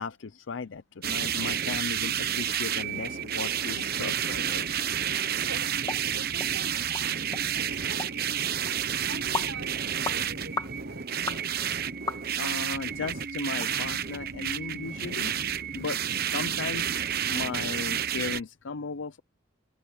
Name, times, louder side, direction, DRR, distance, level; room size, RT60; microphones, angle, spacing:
voice 1, 0.0-4.7 5.2-5.3 12.4-15.3 15.7-16.9 17.3-19.2, left 4 dB, 70° left, 0.6 m, -36 dB
sound 1, 1.0-18.4, right 9 dB, 50° right, 1.0 m, -30 dB
voice 2, 5.3-5.8 6.1-8.3 9.1-11.1 15.8-15.9, right 3 dB, 90° right, 4.8 m, -46 dB
sound 2, 5.9-6.0 6.4-6.5 6.9-7.1 7.3-7.4 8.0-8.1 8.7-8.8 9.3-9.5 10.0-10.2 10.6-10.7 11.3-11.4 12.1-12.5 13.0-13.1 13.6-13.7 14.1-14.2, left 3 dB, 20° left, 1.7 m, -34 dB
open air
head